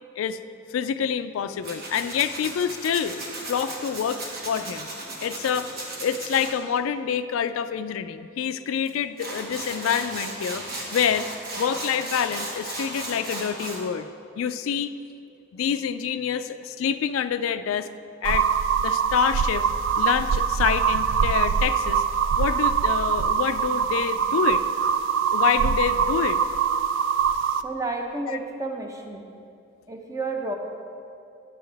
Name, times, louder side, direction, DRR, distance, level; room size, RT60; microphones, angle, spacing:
voice 1, 0.7-3.2 3.5-4.9 5.2-5.7 6.0-10.6 10.9-11.3 11.6-14.1 14.4-14.9 15.5-17.9 18.2-18.5 18.8-19.6 20.0-22.0 22.4-24.6 25.3-26.4 28.3-28.4, left 7 dB, 90° left, 11 dB, 0.3 m, -27 dB
Tools, 1.6-6.5 8.9-9.0 9.2-13.8, right 2 dB, 50° right, 1.3 m, -35 dB
sound 1, 18.2-27.6, right 7 dB, 65° right, 0.3 m, -23 dB
voice 2, 27.6-29.3 29.9-30.6, right 3 dB, 15° right, 2 dB, 0.6 m, -31 dB
9.5 x 7.6 x 3.4 m, 2.5 s
head